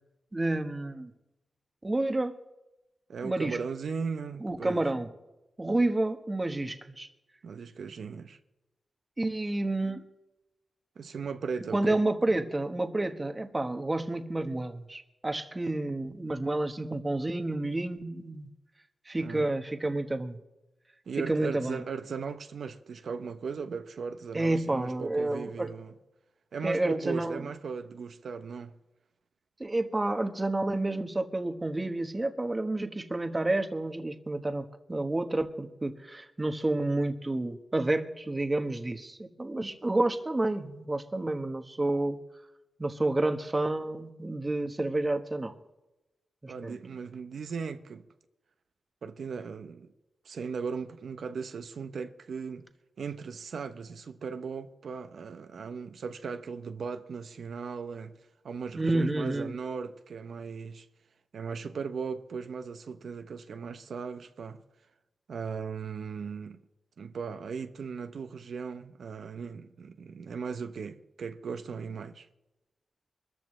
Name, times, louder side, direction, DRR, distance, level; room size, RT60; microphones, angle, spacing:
voice 1, 0.3-1.1 1.8-2.4 3.2-3.6 4.4-5.1 5.6-7.1 9.2-10.0 11.7-18.5 19.1-20.4 21.2-21.8 24.3-25.7 26.6-27.4 29.6-42.2 42.8-45.5 46.4-46.8 58.8-59.5, right 2 dB, 20° right, 1.2 m, -30 dB
voice 2, 3.1-4.9 7.4-8.4 11.0-12.0 19.2-19.5 21.1-25.9 26.5-28.8 46.5-48.0 49.0-49.9 50.2-52.7 53.0-58.1 58.4-60.9 61.3-64.6 65.3-66.6 67.0-72.3, right 5 dB, 75° right, 0.8 m, -37 dB
24.0 x 14.0 x 3.2 m
wide cardioid pair, 110°, 0 cm